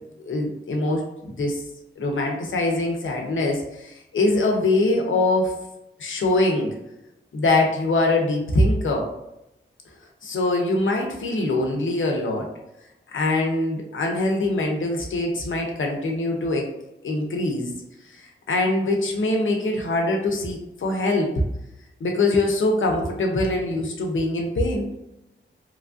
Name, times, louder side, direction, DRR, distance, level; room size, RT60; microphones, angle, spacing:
voice 1, 0.2-1.6 2.0-5.6 6.0-6.7 7.3-9.1 10.2-12.5 13.1-16.7 17.0-17.7 18.5-21.3 22.0-24.9, left 2 dB, 80° left, 1 dB, 0.6 m, -23 dB
3.1 x 2.4 x 2.5 m, 0.88 s
wide cardioid pair, 130°, 20 cm